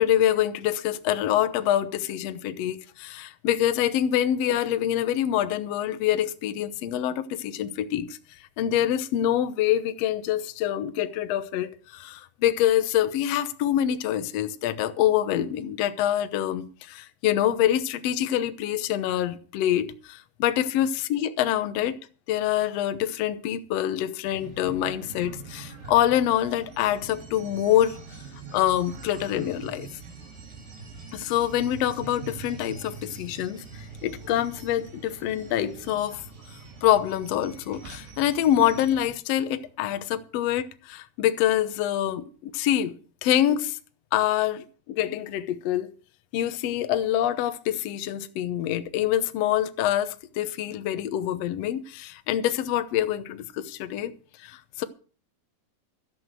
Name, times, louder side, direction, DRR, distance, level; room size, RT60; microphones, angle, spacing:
voice 1, 0.0-8.2 8.6-22.0 22.3-28.0 28.5-29.9 31.1-36.2 36.8-43.8 44.1-45.9 46.3-54.1 54.4-54.8, left 11 dB, 80° left, 1.4 m, -25 dB
sound 1, 24.3-39.1, right 4 dB, 70° right, 6.4 m, -44 dB
13.0 x 7.6 x 7.9 m
omnidirectional pair, 4.2 m